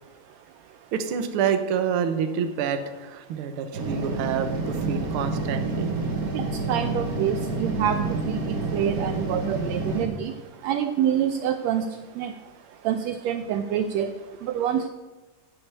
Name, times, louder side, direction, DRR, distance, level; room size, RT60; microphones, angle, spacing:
voice 1, 0.9-5.9, right 7 dB, 60° right, 8 dB, 1.5 m, -27 dB
sound 1, 3.7-10.0, right 3 dB, 45° right, 1.2 m, -28 dB
voice 2, 6.3-8.0 8.3-10.3 10.6-11.9 12.2-12.3 12.8-14.1 14.5-14.9, right 9 dB, 80° right, 8 dB, 1.7 m, -26 dB
10.0 x 6.9 x 9.2 m, 1.2 s
omnidirectional pair, 3.4 m